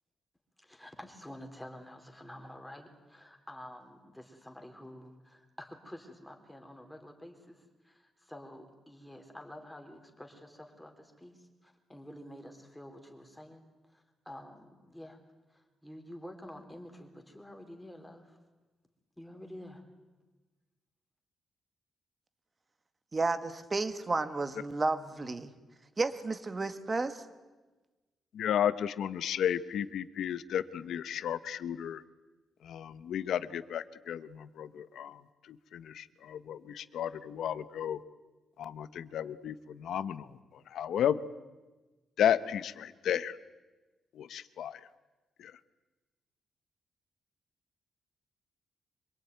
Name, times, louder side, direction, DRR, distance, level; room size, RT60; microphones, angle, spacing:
voice 1, 0.6-2.9 3.1-15.2 15.5-18.4 19.2-19.8, left 1 dB, 5° left, 3 dB, 3.8 m, -49 dB
voice 2, 23.1-25.5 26.0-27.2, right 3 dB, 25° right, 10 dB, 1.7 m, -32 dB
voice 3, 28.3-32.0 32.6-38.0 38.6-41.2 42.2-43.4 44.1-44.8 45.4-45.6, left 9 dB, 75° left, 14 dB, 1.0 m, -33 dB
26.0 x 22.5 x 9.4 m, 1.2 s
wide cardioid pair, 150°, 0 cm